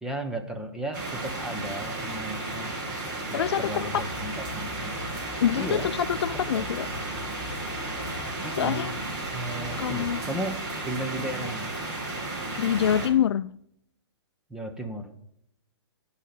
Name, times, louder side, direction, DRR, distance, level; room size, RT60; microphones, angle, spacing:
voice 1, 0.0-2.7 3.3-5.1 5.6-5.9 6.3-6.6 8.4-9.0 9.3-10.6 10.8-11.7 14.5-15.2, right 1 dB, 5° right, 0.8 m, -35 dB
sound 1, 0.9-13.1, right 2 dB, 45° right, 3.7 m, -33 dB
voice 2, 3.3-4.0 5.4-6.9 8.5-8.9 9.8-10.2 12.6-13.5, left 9 dB, 70° left, 0.4 m, -25 dB
sound 2, 3.8-8.2, left 5 dB, 30° left, 2.8 m, -43 dB
11.0 x 5.6 x 6.7 m
hypercardioid pair, 155°, 14 cm